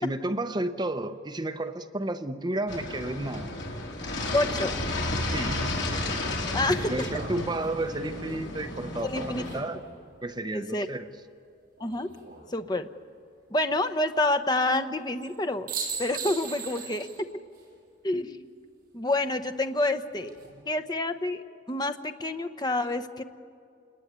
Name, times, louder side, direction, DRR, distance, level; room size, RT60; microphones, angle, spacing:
voice 1, 0.0-3.5 5.3-5.8 6.7-9.8 10.2-11.1, right 2 dB, 20° right, 8 dB, 0.7 m, -32 dB
sound 1, 2.7-9.6, left 2 dB, 65° left, 3.8 m, -32 dB
voice 2, 4.3-4.8 6.5-6.9 9.0-9.4 10.5-10.9 11.8-12.1 12.5-12.9 13.5-15.7 16.0-17.3 18.0-18.5 18.9-20.3 20.7-21.4 21.7-23.2, left 2 dB, 20° left, 9 dB, 0.8 m, -28 dB
sound 2, 5.3-5.4 6.7-10.0 11.8-12.4 15.2-15.4 15.7-17.2 17.5-17.6 20.0-20.5, right 5 dB, 45° right, 7.8 m, -39 dB
28.0 x 20.0 x 9.5 m, 2.4 s
head